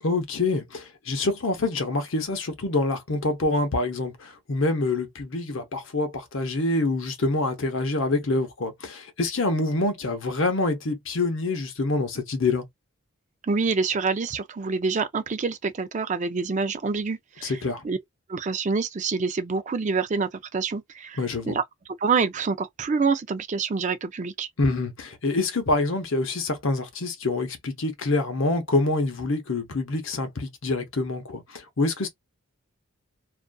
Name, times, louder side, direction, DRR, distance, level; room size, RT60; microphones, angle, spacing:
voice 1, 0.0-12.6 17.4-17.8 21.2-21.6 24.6-32.1, left 2 dB, 60° left, 0.8 m, -26 dB
voice 2, 13.5-17.6 17.8-18.0 18.3-21.2 21.5-21.6 22.0-24.5, right 4 dB, 35° right, 0.4 m, -26 dB
2.4 x 2.4 x 2.2 m
head